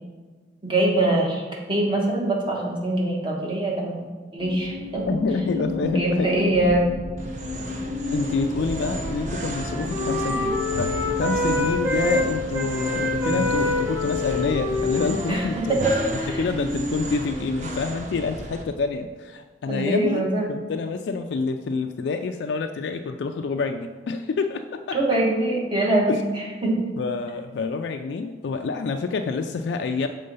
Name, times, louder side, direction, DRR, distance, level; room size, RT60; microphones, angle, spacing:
voice 1, 0.6-1.4 1.7-4.0 4.3-5.2 5.5-6.9 15.3-15.9 16.2-16.4 19.7-20.5 24.9-26.9, right 1 dB, 25° right, -2 dB, 1.3 m, -23 dB
sound 1, 4.4-15.1, left 3 dB, 80° right, 0.8 m, -33 dB
voice 2, 5.1-6.3 8.1-15.8 16.3-25.0 26.1-26.2 27.0-30.1, left 4 dB, 70° left, 6 dB, 0.3 m, -27 dB
sound 2, 7.2-18.6, right 1 dB, 40° right, 0.7 m, -34 dB
Wind instrument woodwind instrument, 7.3-12.2 12.5-17.8, left 1 dB, 10° right, 0.8 m, -28 dB
6.6 x 3.7 x 5.4 m, 1.4 s
head